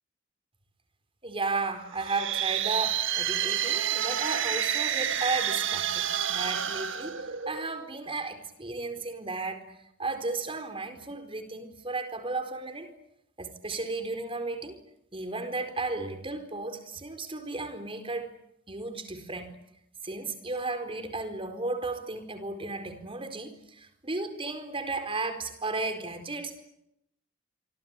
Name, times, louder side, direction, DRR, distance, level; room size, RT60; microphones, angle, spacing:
voice 1, 1.2-7.1 7.5-12.9 13.4-14.8 15.1-18.3 18.7-19.5 20.0-26.6, right 3 dB, 30° right, 9 dB, 4.4 m, -34 dB
sound 1, 1.9-7.8, right 9 dB, 70° right, 1.7 m, -29 dB
27.0 x 24.0 x 8.4 m, 0.78 s
head